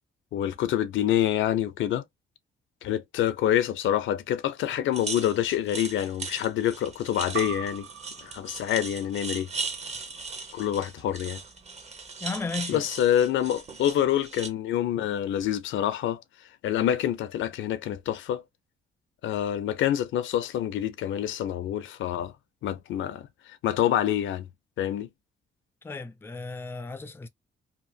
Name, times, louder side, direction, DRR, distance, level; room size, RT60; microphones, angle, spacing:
voice 1, 0.3-2.0 2.8-7.9 8.2-9.5 10.5-11.4 12.7-16.2 16.6-18.4 19.2-22.3 22.6-24.5 24.8-25.1, left 11 dB, 75° left, 0.6 m, -27 dB
sound 1, 4.9-14.5, right 4 dB, 35° right, 0.9 m, -38 dB
sound 2, 7.3-12.5, right 8 dB, 80° right, 0.6 m, -43 dB
voice 2, 12.2-12.8 25.8-27.3, left 4 dB, 10° left, 0.4 m, -35 dB
2.9 x 2.5 x 2.7 m
cardioid pair, 90°, 20 cm